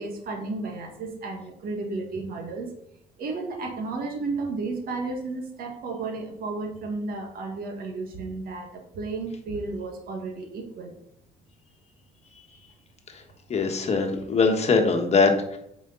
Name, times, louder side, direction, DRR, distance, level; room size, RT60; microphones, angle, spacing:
voice 1, 0.0-2.7 3.2-10.9, right 3 dB, 60° right, 3 dB, 1.8 m, -33 dB
voice 2, 13.5-15.6, left 4 dB, 40° left, 4 dB, 1.3 m, -22 dB
8.3 x 5.1 x 4.0 m, 0.75 s
cardioid pair, 110°, 17 cm